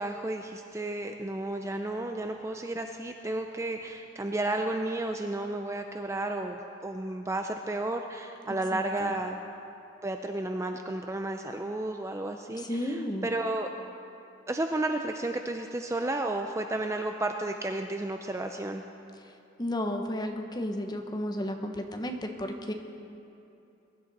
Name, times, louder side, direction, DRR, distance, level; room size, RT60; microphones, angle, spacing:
voice 1, 0.0-9.4 10.0-13.7 14.5-18.8, right 2 dB, 15° right, 5 dB, 0.4 m, -32 dB
voice 2, 8.5-9.1 12.6-13.3 19.6-22.7, left 1 dB, 20° left, 4 dB, 0.9 m, -33 dB
22.0 x 11.5 x 4.1 m, 2.8 s
head